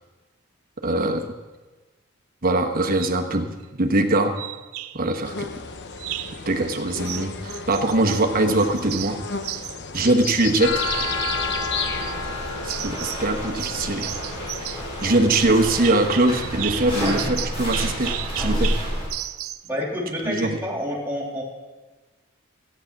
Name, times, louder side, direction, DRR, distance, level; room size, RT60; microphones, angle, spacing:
voice 1, 0.8-1.3 2.4-4.4 4.9-5.5 6.5-9.2 9.9-10.9 12.6-14.1 15.0-18.8 20.2-20.6, right 2 dB, 40° right, 4 dB, 1.2 m, -22 dB
sound 1, 2.9-3.2 4.4-5.2 6.0-6.4 7.0-8.3 8.6-10.5 10.8-12.2 12.7-13.3 13.6-19.7, right 14 dB, 75° right, 0.5 m, -34 dB
sound 2, 5.2-16.0, left 5 dB, 55° left, 0.9 m, -34 dB
sound 3, 10.6-19.1, left 1 dB, 25° left, 5.3 m, -29 dB
voice 2, 19.6-21.4, equal, 10° right, -3 dB, 3.0 m, -28 dB
14.0 x 9.6 x 6.0 m, 1.2 s
head